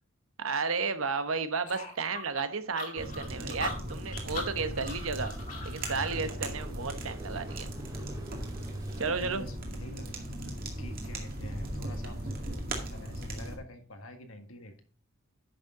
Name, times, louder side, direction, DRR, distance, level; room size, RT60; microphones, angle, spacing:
voice 1, 0.4-5.3 5.6-7.7 9.0-9.4, right 4 dB, 70° right, 10 dB, 1.0 m, -33 dB
sound 1, 1.7-6.2, left 3 dB, 35° left, 2.2 m, -40 dB
sound 2, 3.0-13.6, right 1 dB, 40° right, 2.2 m, -38 dB
sound 3, 6.1-9.5 13.3-13.5, right 2 dB, 20° right, 2.8 m, -49 dB
voice 2, 9.0-14.8, left 1 dB, 70° left, 6 dB, 1.7 m, -47 dB
10.0 x 6.6 x 3.7 m, 0.41 s
head